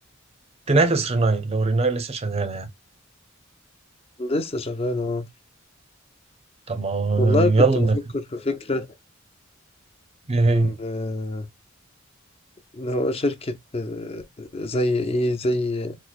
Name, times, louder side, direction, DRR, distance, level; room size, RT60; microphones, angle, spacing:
voice 1, 0.7-2.7 6.7-8.0 10.3-10.8, right 3 dB, 30° right, 0.6 m, -21 dB
voice 2, 4.2-5.3 7.2-7.9 8.1-8.9 10.5-11.5 12.7-16.0, left 1 dB, 30° left, 0.5 m, -26 dB
4.3 x 2.6 x 2.4 m
head